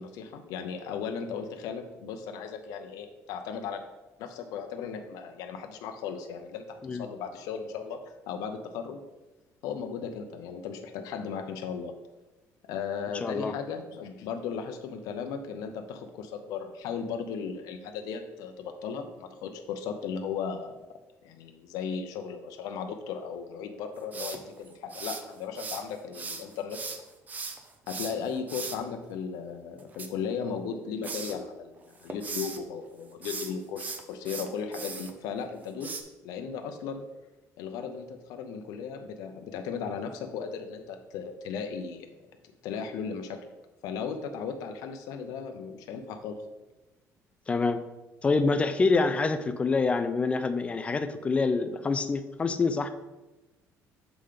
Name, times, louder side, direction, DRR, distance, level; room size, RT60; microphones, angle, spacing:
voice 1, 0.0-3.8 4.2-9.0 9.6-11.9 12.6-20.8 21.2-26.8 27.9-37.0 37.6-42.1 42.6-43.4 43.8-46.4, left 6 dB, 90° left, 6 dB, 0.6 m, -36 dB
voice 2, 13.2-13.5 47.5-47.8 48.2-52.9, left 4 dB, 20° left, 10 dB, 0.4 m, -26 dB
sound 1, 24.1-25.8 26.1-28.8 29.8-30.7 31.0-31.4 31.8-32.6 33.1-35.1 35.8-36.0, right 4 dB, 25° right, 0.6 m, -38 dB
7.0 x 3.8 x 5.0 m, 1.1 s
cardioid pair, 150°, 6 cm